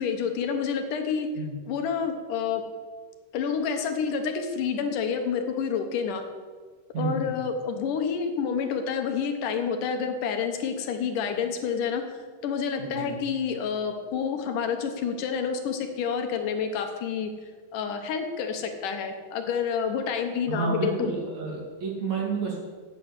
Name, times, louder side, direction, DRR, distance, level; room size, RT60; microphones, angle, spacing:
voice 1, 0.0-1.3 1.7-2.6 3.3-6.2 7.0-12.0 12.4-17.3 17.7-21.1, left 6 dB, 70° left, 6 dB, 2.4 m, -28 dB
voice 2, 6.9-7.3 12.8-13.1 20.5-22.6, right 4 dB, 55° right, -2 dB, 3.4 m, -30 dB
8.9 x 8.5 x 8.1 m, 1.5 s
omnidirectional pair, 4.2 m